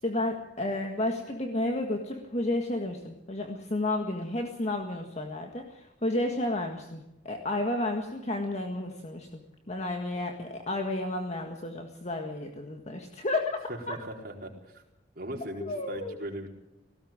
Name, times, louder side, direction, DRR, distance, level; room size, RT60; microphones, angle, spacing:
voice 1, 0.0-9.3 9.7-13.6 13.9-14.0 15.6-16.2, left 2 dB, 40° left, 3 dB, 1.8 m, -32 dB
voice 2, 13.7-14.8 15.2-16.5, right 1 dB, 55° right, 0 dB, 4.4 m, -39 dB
18.5 x 17.0 x 8.9 m, 0.91 s
head